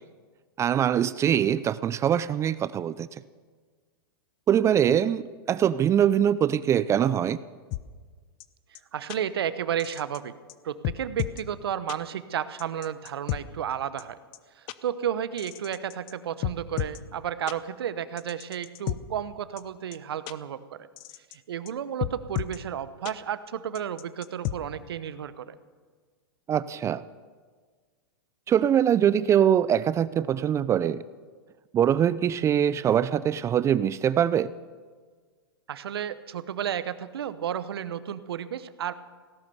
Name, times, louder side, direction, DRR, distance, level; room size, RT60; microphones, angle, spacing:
voice 1, 0.6-3.1 4.5-5.2 5.5-7.4 26.5-27.0 28.5-31.0 31.7-34.5, right 9 dB, 20° right, 17 dB, 0.4 m, -23 dB
sound 1, 7.7-7.8 8.4-8.5 8.8-8.9 9.1-9.2 9.8-10.2 10.5-10.6 10.8-11.4 11.9-12.0 12.6-13.4 14.0-14.1 14.3-14.4 14.7-14.8 15.4-16.1 16.4-17.0 17.5-17.6 18.2-19.0 19.6-19.7 19.9-20.0 20.3-20.4 21.0-21.4 21.7-21.8 22.0-22.6 23.1-23.2 23.8-24.6, left 15 dB, 45° left, 0.8 m, -32 dB
voice 2, 8.7-10.3 10.6-14.2 14.6-20.9 21.3-25.5 35.7-38.9, right 9 dB, 75° right, 14 dB, 0.9 m, -32 dB
17.0 x 11.5 x 7.0 m, 1.5 s
hypercardioid pair, 115°, 13 cm